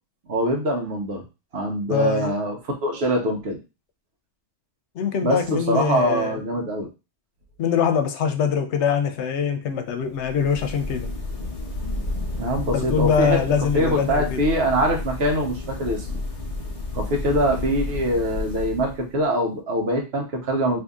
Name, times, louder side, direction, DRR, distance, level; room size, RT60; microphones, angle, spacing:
voice 1, 0.3-1.2 1.5-3.6 5.2-6.9 12.4-13.4 13.7-16.2 16.9-20.8, right 1 dB, 65° right, 1.1 m, -23 dB
voice 2, 1.9-2.3 5.0-6.4 7.6-11.1 12.7-14.4, left 7 dB, 90° left, 0.9 m, -23 dB
sound 1, 10.1-19.2, left 2 dB, 35° left, 0.8 m, -31 dB
2.7 x 2.7 x 3.5 m
omnidirectional pair, 1.2 m